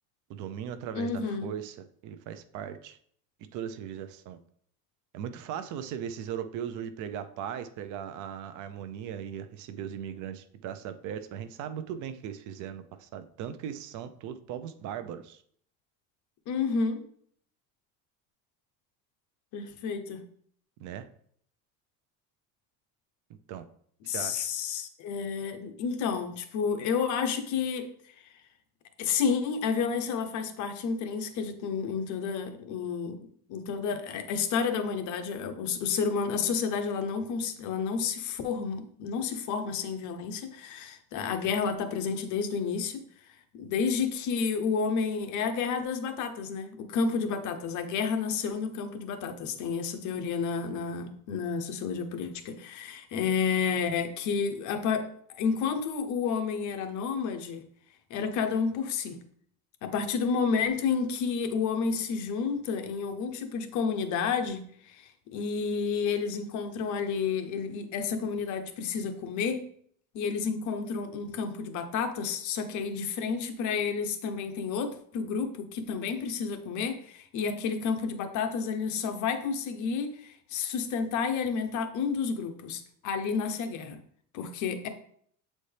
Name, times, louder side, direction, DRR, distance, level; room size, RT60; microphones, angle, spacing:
voice 1, 0.3-3.0 3.5-4.4 5.1-15.4 20.8-21.1 23.5-23.6 24.0-24.5, right 9 dB, 60° right, 10 dB, 0.6 m, -38 dB
voice 2, 0.9-1.5 16.5-17.0 19.5-20.2 24.0-27.9 29.0-33.2 33.5-43.0 43.5-57.6 58.1-59.2 59.8-69.6 70.1-84.0 84.3-84.9, left 5 dB, 55° left, 8 dB, 0.9 m, -30 dB
7.8 x 4.2 x 3.3 m, 0.63 s
cardioid pair, 155°, 34 cm